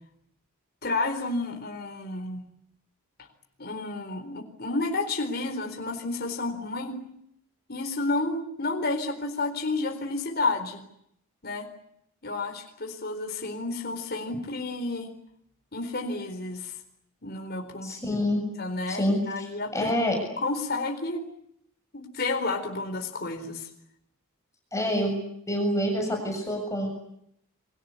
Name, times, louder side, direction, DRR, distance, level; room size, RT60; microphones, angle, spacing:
voice 1, 0.8-2.4 3.6-7.0 7.7-10.8 11.4-11.7 12.2-15.1 15.7-16.8 17.2-18.2 18.6-19.9 20.4-21.2 21.9-23.7, left 2 dB, 45° left, 4 dB, 4.1 m, -31 dB
voice 2, 17.8-18.4 18.9-19.5 19.7-20.2 24.7-25.1 25.5-26.9, left 1 dB, 15° left, 2 dB, 7.1 m, -26 dB
30.0 x 23.5 x 8.4 m, 0.76 s
head